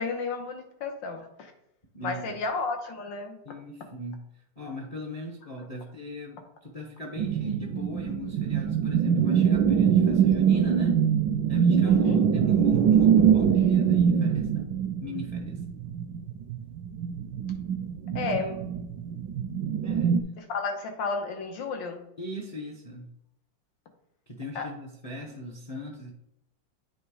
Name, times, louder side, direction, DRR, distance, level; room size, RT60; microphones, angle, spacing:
voice 1, 0.0-1.5 2.0-3.6 11.8-12.2 18.1-18.7 20.5-22.0 24.5-24.7, left 4 dB, 80° left, 4 dB, 1.8 m, -32 dB
voice 2, 1.9-2.4 3.4-4.2 4.6-11.0 11.5-14.7 15.0-15.6 19.8-20.2 22.2-23.1 24.3-26.1, left 1 dB, 40° left, 0 dB, 0.5 m, -39 dB
sound 1, 7.2-20.2, right 8 dB, 80° right, 1.2 m, -23 dB
8.7 x 3.1 x 4.7 m, 0.80 s
omnidirectional pair, 2.0 m